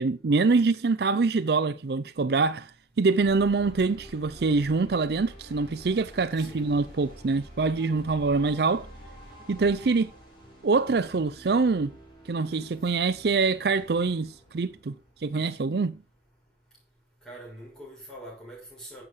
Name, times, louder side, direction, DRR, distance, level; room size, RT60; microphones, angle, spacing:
voice 1, 0.0-2.7 3.0-8.9 9.5-10.1 10.6-11.9 12.3-14.9 15.2-16.0, right 4 dB, 60° right, 0.5 m, -25 dB
sound 1, 3.2-16.0, equal, 25° left, 6.3 m, -48 dB
voice 2, 17.2-19.0, right 1 dB, 5° left, 6.7 m, -44 dB
11.0 x 8.1 x 4.8 m
head